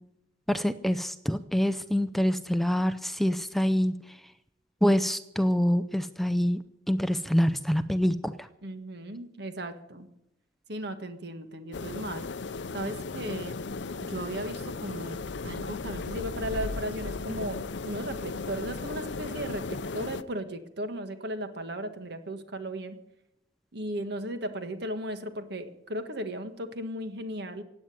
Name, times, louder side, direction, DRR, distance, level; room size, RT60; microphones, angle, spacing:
voice 1, 0.5-3.9 4.8-6.6 6.9-8.3, equal, ahead, 12 dB, 0.5 m, -25 dB
voice 2, 8.6-10.1 10.7-12.2 12.7-13.6 14.0-23.0 23.7-27.6, right 1 dB, 60° right, 9 dB, 1.6 m, -36 dB
sound 1, 11.7-20.2, left 4 dB, 70° left, 0.6 m, -36 dB
16.5 x 8.9 x 9.3 m, 0.85 s
head